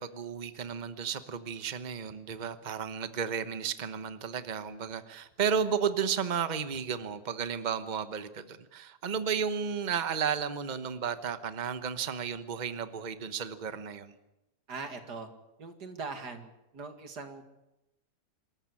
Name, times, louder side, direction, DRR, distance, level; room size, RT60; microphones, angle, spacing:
voice 1, 0.0-14.1, right 7 dB, 30° right, 11 dB, 1.1 m, -33 dB
voice 2, 14.7-15.3 15.6-17.4, right 4 dB, 85° right, 7 dB, 2.8 m, -41 dB
26.0 x 13.5 x 9.8 m, 0.93 s
omnidirectional pair, 1.7 m